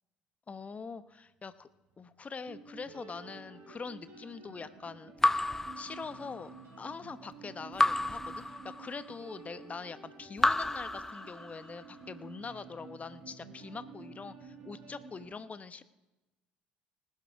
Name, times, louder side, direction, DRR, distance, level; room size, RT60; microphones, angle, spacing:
voice 1, 0.5-1.7 2.0-5.4 5.8-6.5 6.8-15.8, left 5 dB, 30° left, 13 dB, 0.8 m, -43 dB
sound 1, 1.9-2.0 2.5-15.3, right 4 dB, 55° right, 5.1 m, -51 dB
Raindrop / Drip, 5.2-6.6 7.8-9.2 10.4-11.8, left 2 dB, 10° left, 0.3 m, -31 dB
19.5 x 11.5 x 3.5 m, 1.0 s
figure-of-eight pair, 55°, 5 cm